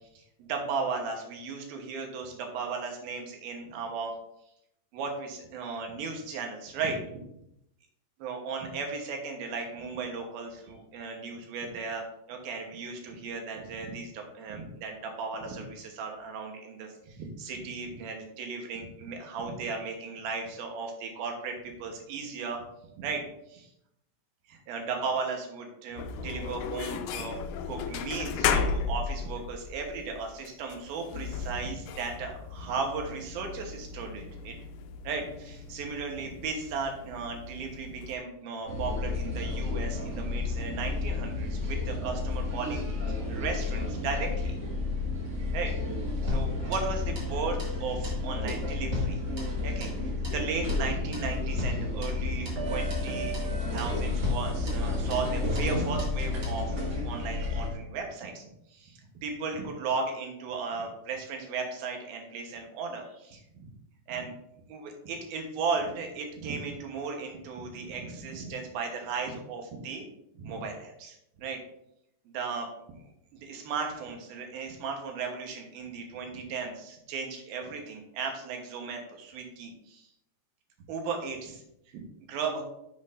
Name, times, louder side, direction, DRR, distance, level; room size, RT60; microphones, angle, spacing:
voice 1, 0.1-4.2 4.9-7.2 8.2-22.6 23.0-23.2 23.5-23.7 24.5-27.4 27.7-34.6 35.0-42.9 43.3-44.6 45.5-45.7 46.2-49.2 49.6-63.7 64.1-64.3 64.7-70.0 70.4-71.6 72.3-72.7 73.3-80.1 80.9-81.6 81.9-82.6, right 4 dB, 70° right, 3 dB, 2.7 m, -36 dB
sound 1, 26.0-38.2, left 6 dB, 90° left, 2.0 m, -35 dB
sound 2, 38.7-57.7, left 3 dB, 50° right, 1.2 m, -31 dB
sound 3, 46.3-47.3 47.6-47.8 48.0-48.2 48.5-50.0 50.2-50.4 50.7-50.9 51.1-51.3 51.6-52.6 52.9-53.1 53.3-53.5 53.8-54.0 54.2-55.3 55.6-55.7 56.0-56.2 56.4-56.6, left 2 dB, 35° right, 2.1 m, -36 dB
11.0 x 6.4 x 2.6 m, 0.79 s
omnidirectional pair, 4.8 m